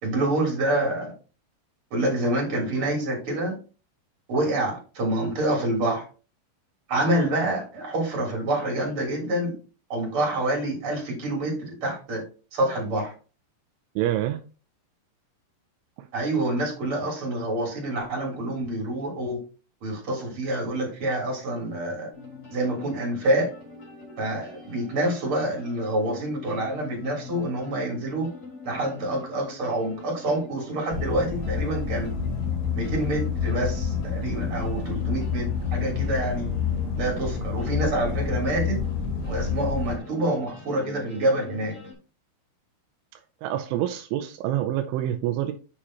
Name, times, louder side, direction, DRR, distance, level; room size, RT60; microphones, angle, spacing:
voice 1, 0.0-1.1 1.9-3.6 4.3-6.0 6.9-9.5 9.9-12.2 12.5-13.1 16.1-19.4 19.8-22.1 22.5-23.5 24.2-28.3 28.6-32.1 32.7-36.6 37.0-38.8 39.3-41.7, right 1 dB, 30° right, 3.7 m, -27 dB
voice 2, 14.0-14.4 16.0-16.1 43.4-45.5, right 12 dB, 85° right, 3.1 m, -27 dB
sound 1, 22.1-41.9, left 3 dB, 25° left, 3.2 m, -44 dB
sound 2, 30.9-40.0, left 6 dB, 80° left, 5.0 m, -28 dB
8.6 x 6.3 x 2.9 m
omnidirectional pair, 5.7 m